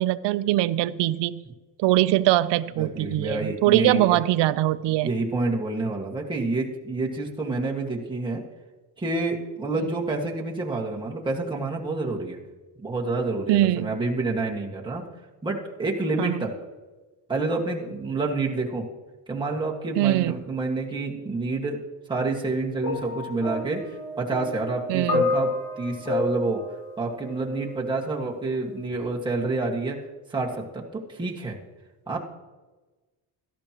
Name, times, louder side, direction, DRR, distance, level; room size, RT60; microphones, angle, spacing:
voice 1, 0.0-1.4 1.8-5.1 13.5-13.9 16.2-16.4 20.0-20.4 24.9-25.3, right 15 dB, 70° right, 15 dB, 0.6 m, -22 dB
voice 2, 2.8-4.2 5.0-8.4 9.0-12.4 12.8-15.0 15.4-16.5 17.3-18.8 19.3-21.8 22.1-23.8 24.2-26.6 27.0-30.0 30.3-31.6 32.1-32.2, right 3 dB, 10° right, -2 dB, 1.7 m, -28 dB
sound 1, 22.8-27.9 28.8-29.0, left 3 dB, 70° left, 3.2 m, -30 dB
17.5 x 13.0 x 3.0 m, 1.2 s
cardioid pair, 140°, 45 cm